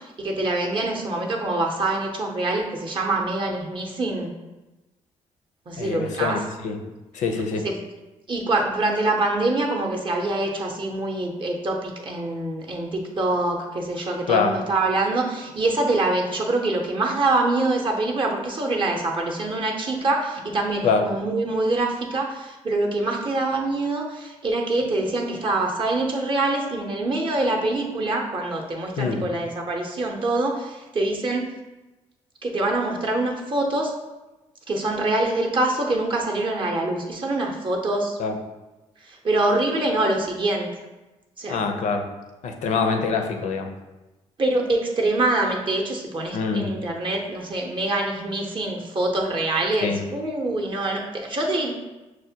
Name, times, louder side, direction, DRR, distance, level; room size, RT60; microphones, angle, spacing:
voice 1, 0.0-4.3 5.7-6.4 7.6-7.8 8.3-31.6 32.4-33.9 34.7-38.2 39.1-40.7 41.4-41.6 44.4-51.7, right 2 dB, 40° right, 0 dB, 0.6 m, -25 dB
voice 2, 5.8-6.8 7.1-7.7 14.3-14.6 20.8-21.1 29.0-29.2 38.2-38.4 41.5-42.1 42.4-43.7 46.3-46.7 49.8-50.0, left 5 dB, 75° left, 6 dB, 0.5 m, -24 dB
6.2 x 2.1 x 2.7 m, 1.1 s
cardioid pair, 90°, 13 cm